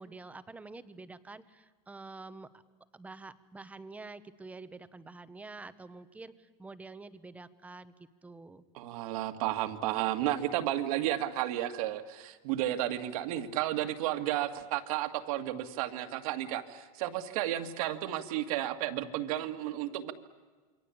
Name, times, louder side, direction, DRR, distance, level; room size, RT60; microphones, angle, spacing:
voice 1, 0.0-2.5 2.9-7.9 8.2-8.6, right 3 dB, 5° right, 13 dB, 1.0 m, -47 dB
voice 2, 8.7-20.1, right 13 dB, 60° right, 8 dB, 2.2 m, -32 dB
28.0 x 23.5 x 8.5 m, 1.4 s
supercardioid pair, 160°, 20 cm